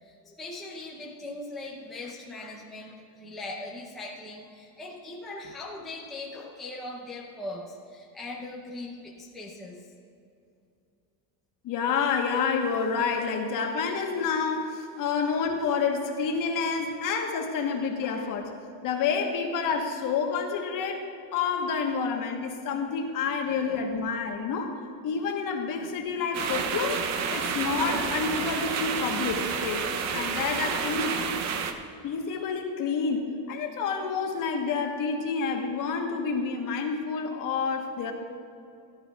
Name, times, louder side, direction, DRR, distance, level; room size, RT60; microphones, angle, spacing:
voice 1, 0.0-9.9 23.7-23.8, left 2 dB, ahead, -3 dB, 0.6 m, -40 dB
voice 2, 11.6-18.6 18.8-21.0 21.3-24.7 25.0-29.8 30.1-31.2 32.0-38.1, left 5 dB, 45° left, 3 dB, 1.2 m, -29 dB
sound 1, 26.3-31.7, right 6 dB, 35° right, 0.7 m, -30 dB
16.5 x 11.5 x 2.3 m, 2.6 s
cardioid pair, 165°, 47 cm